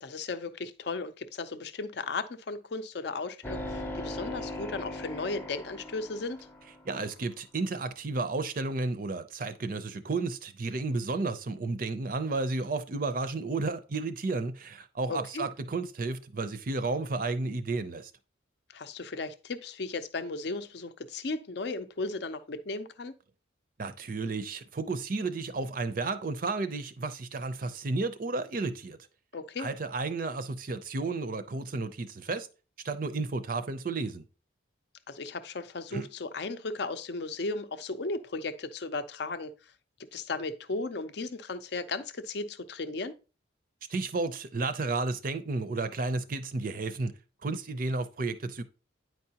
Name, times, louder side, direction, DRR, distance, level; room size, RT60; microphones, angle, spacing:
voice 1, 0.0-6.4 15.1-15.5 18.7-23.1 29.3-29.7 35.1-39.5 40.1-43.1, left 3 dB, 60° left, 0.5 m, -35 dB
sound 1, 3.4-6.9, left 1 dB, 10° left, 0.6 m, -39 dB
voice 2, 6.9-18.1 23.8-29.0 29.6-32.5 32.8-34.2 35.9-36.1 43.9-47.1 47.4-48.6, right 3 dB, 45° right, 0.5 m, -32 dB
9.3 x 4.7 x 2.8 m
head